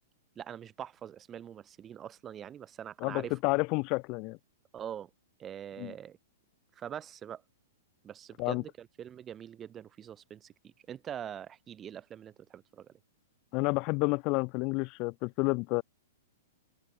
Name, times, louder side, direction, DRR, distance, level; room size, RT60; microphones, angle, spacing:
voice 1, 0.3-3.4 4.7-5.1 5.4-6.2 6.7-7.4 8.0-12.9, right 9 dB, 20° right, 1.7 m, -43 dB
voice 2, 3.0-4.4 5.8-5.9 8.4-8.6 13.5-15.8, left 28 dB, 40° left, 0.4 m, -30 dB
open air
figure-of-eight pair, 105°, 0 cm